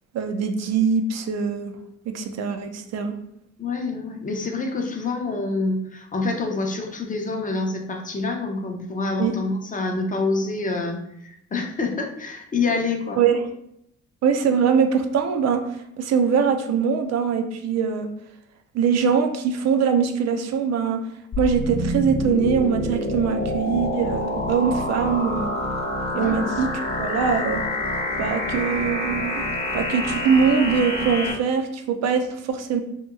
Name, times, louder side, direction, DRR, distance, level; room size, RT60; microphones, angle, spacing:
voice 1, 0.1-1.7 2.1-3.1 9.2-9.3 13.2-13.5 14.2-18.1 18.7-21.0 21.4-25.5 26.1-26.7 27.0-27.6 28.2-29.4 29.7-32.8, right 6 dB, 60° right, 5 dB, 0.5 m, -22 dB
voice 2, 3.6-13.2 14.4-14.5 26.1-26.5, left 3 dB, 25° left, 2 dB, 0.5 m, -27 dB
sound 1, 21.3-31.3, left 1 dB, 45° left, 1.0 m, -27 dB
2.8 x 2.8 x 2.3 m, 0.76 s
cardioid pair, 90°, 30 cm